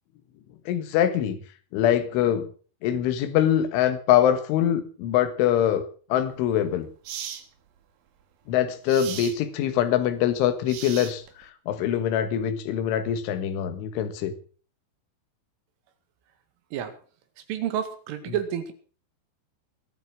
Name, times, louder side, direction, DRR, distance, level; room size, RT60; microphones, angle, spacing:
voice 1, 0.7-1.4 1.7-2.5 2.8-5.9 6.1-6.9 8.5-14.3, left 10 dB, 80° left, 9 dB, 4.0 m, -23 dB
sound 1, 6.2-6.3 7.1-7.5 8.9-9.4 10.7-11.4, right 9 dB, 60° right, 2.8 m, -37 dB
voice 2, 17.5-18.7, right 9 dB, 85° right, 8 dB, 4.5 m, -29 dB
20.5 x 8.9 x 6.3 m, 0.41 s
omnidirectional pair, 5.6 m